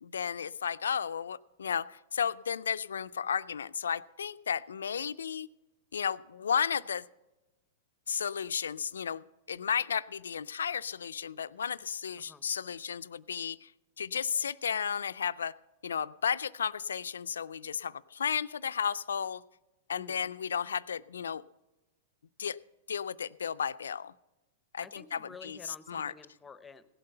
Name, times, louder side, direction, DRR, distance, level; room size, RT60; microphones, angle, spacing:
voice 1, 0.0-5.5 5.9-7.0 8.1-13.7 14.0-15.5 15.8-19.4 19.9-21.4 22.4-22.6 22.9-24.1 24.7-25.6 25.9-26.1, left 7 dB, 90° left, 16 dB, 0.3 m, -33 dB
voice 2, 19.9-20.3 24.8-26.9, left 4 dB, 15° left, 14 dB, 0.7 m, -51 dB
17.0 x 7.8 x 5.5 m, 1.0 s
hypercardioid pair, 115°, 0 cm